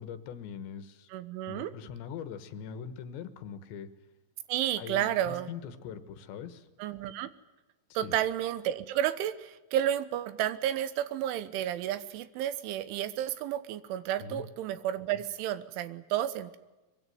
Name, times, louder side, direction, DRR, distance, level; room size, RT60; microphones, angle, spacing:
voice 1, 0.0-1.1 1.5-3.9 4.8-6.7 7.9-8.1 14.2-14.4, left 7 dB, 75° left, 11 dB, 3.5 m, -42 dB
voice 2, 1.1-1.7 4.5-5.5 6.8-7.3 8.0-16.6, right 11 dB, 85° right, 14 dB, 3.6 m, -31 dB
24.0 x 22.5 x 9.4 m, 1.1 s
omnidirectional pair, 5.4 m